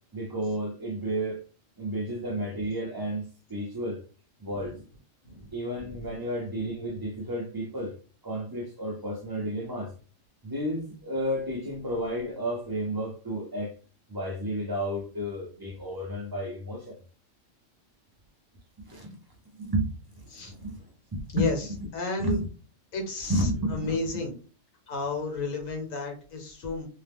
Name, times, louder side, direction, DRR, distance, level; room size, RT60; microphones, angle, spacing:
voice 1, 0.1-1.4 1.8-4.0 4.4-4.7 5.5-8.0 8.2-9.9 10.4-13.7 14.1-17.0 18.8-19.2 19.6-19.9 20.2-20.8 21.1-21.5 22.2-22.4 23.3-24.2, right 1 dB, 35° right, 0.3 m, -31 dB
voice 2, 21.9-22.4 22.9-24.3 24.9-26.9, left 3 dB, 85° left, 1.4 m, -32 dB
2.8 x 2.0 x 3.4 m
omnidirectional pair, 1.3 m